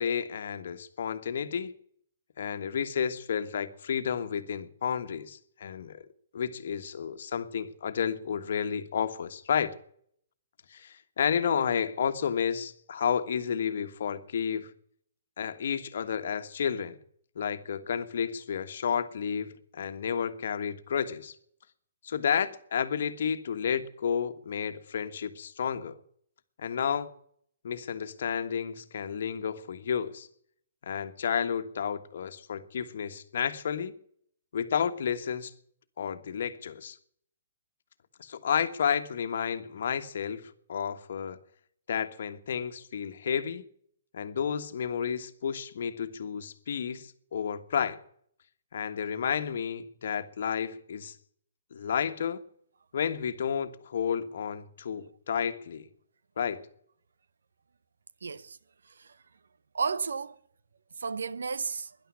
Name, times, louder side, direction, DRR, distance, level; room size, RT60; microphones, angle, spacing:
voice 1, 0.0-1.7 2.4-6.0 6.3-9.7 10.7-14.7 15.4-17.0 17.3-21.3 22.0-26.0 26.6-27.1 27.6-30.3 30.8-33.9 34.5-35.5 36.0-37.0 38.2-41.4 41.9-43.6 44.1-48.0 48.7-51.1 51.7-52.4 52.9-55.9 56.4-56.6, left 7 dB, 65° left, 1.4 m, -31 dB
voice 2, 58.2-58.6 58.8-59.2 59.7-60.4 60.9-62.0, right 5 dB, 85° right, 0.8 m, -33 dB
13.0 x 11.0 x 9.8 m
hypercardioid pair, 145°, 0 cm